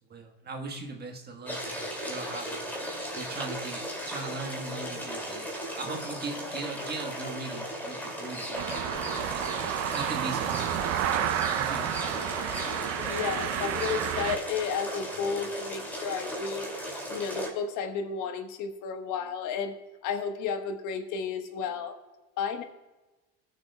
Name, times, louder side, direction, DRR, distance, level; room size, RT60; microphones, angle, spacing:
voice 1, 0.1-2.8 3.1-9.5 9.9-12.6, right 3 dB, 30° right, 3 dB, 1.3 m, -40 dB
sound 1, 1.5-17.5, equal, 5° left, 2.4 m, -36 dB
sound 2, 8.6-14.4, right 11 dB, 45° right, 0.6 m, -30 dB
voice 2, 13.0-16.7 17.1-19.8 20.0-22.0 22.4-22.6, left 6 dB, 60° left, 7 dB, 1.2 m, -32 dB
20.0 x 6.7 x 2.2 m, 1.1 s
supercardioid pair, 115°, 34 cm